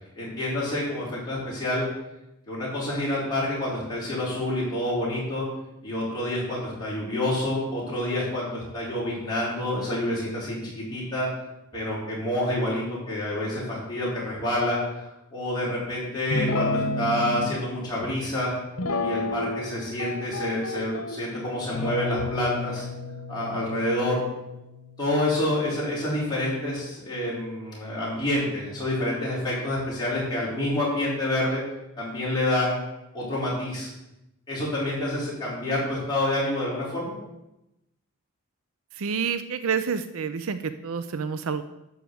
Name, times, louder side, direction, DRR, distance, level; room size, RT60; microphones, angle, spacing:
voice 1, 0.2-1.8 2.5-5.5 5.8-11.3 11.7-18.5 19.0-22.8 23.3-24.2 25.0-31.6 32.0-32.8 33.1-33.9 34.5-37.1, left 1 dB, 20° left, -7 dB, 4.8 m, -28 dB
Guitar, 16.3-17.5 18.8-19.7 20.0-21.2 21.8-25.2, left 2 dB, 75° left, 1.2 m, -31 dB
voice 2, 39.0-41.6, right 6 dB, 70° right, 11 dB, 0.5 m, -28 dB
11.5 x 4.9 x 7.9 m, 0.92 s
head